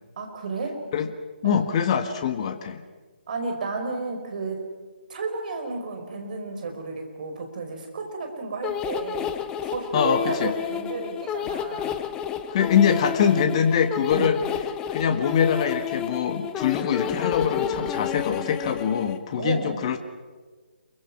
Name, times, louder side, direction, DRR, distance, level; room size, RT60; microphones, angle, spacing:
voice 1, 0.2-0.8 1.4-1.6 3.3-4.6 5.1-9.3 9.6-12.0 13.2-13.5 14.1-14.4 19.4-19.8, right 3 dB, 45° right, 4 dB, 5.0 m, -32 dB
voice 2, 1.4-2.8 9.9-10.5 12.5-14.4 14.9-20.0, left 7 dB, 35° left, 7 dB, 1.6 m, -23 dB
sound 1, 8.6-19.2, left 9 dB, 15° left, 0.8 m, -30 dB
27.5 x 23.5 x 6.2 m, 1.4 s
figure-of-eight pair, 145°, 6 cm